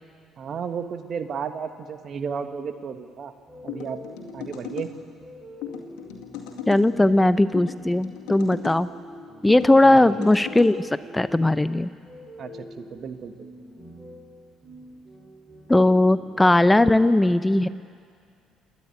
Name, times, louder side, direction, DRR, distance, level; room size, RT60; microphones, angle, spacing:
voice 1, 0.4-3.3 3.6-4.0 4.3-4.9 9.8-10.1 12.4-13.5, right 6 dB, 55° right, 8 dB, 1.5 m, -33 dB
sound 1, 3.5-17.2, left 1 dB, 30° right, 7.5 m, -45 dB
sound 2, 3.7-4.9 5.6-6.8 7.5-8.8 9.5-10.7, left 9 dB, 75° left, 2.2 m, -37 dB
voice 2, 6.7-8.9 9.4-11.9 15.7-17.7, left 1 dB, 10° left, 14 dB, 0.6 m, -18 dB
28.0 x 10.5 x 9.5 m, 2.2 s
hypercardioid pair, 60°, 0 cm